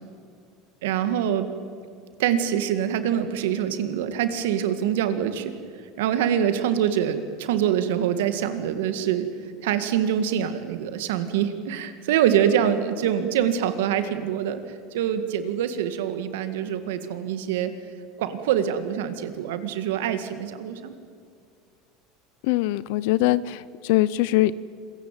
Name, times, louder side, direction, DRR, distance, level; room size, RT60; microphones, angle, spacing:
voice 1, 0.8-1.5 2.2-5.5 6.0-9.3 9.6-14.6 14.9-17.7 18.2-20.9, right 9 dB, 80° right, 10 dB, 1.9 m, -25 dB
voice 2, 22.4-24.6, left 16 dB, 70° left, 18 dB, 0.6 m, -22 dB
26.5 x 15.5 x 9.2 m, 2.3 s
supercardioid pair, 100°, 0 cm